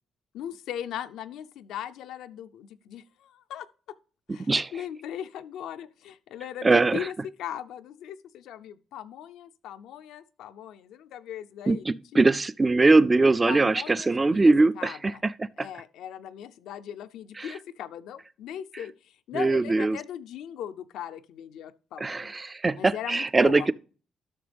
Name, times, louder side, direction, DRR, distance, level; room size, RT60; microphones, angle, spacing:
voice 1, 0.3-4.0 4.3-7.1 7.4-12.2 13.5-15.2 15.6-22.3 22.8-23.7, left 10 dB, 85° left, 0.5 m, -39 dB
voice 2, 6.6-7.1 11.7-15.7 17.4-17.5 19.3-20.0 22.0-23.7, right 3 dB, 25° right, 0.3 m, -22 dB
12.0 x 6.1 x 3.4 m
cardioid pair, 90°, 0 cm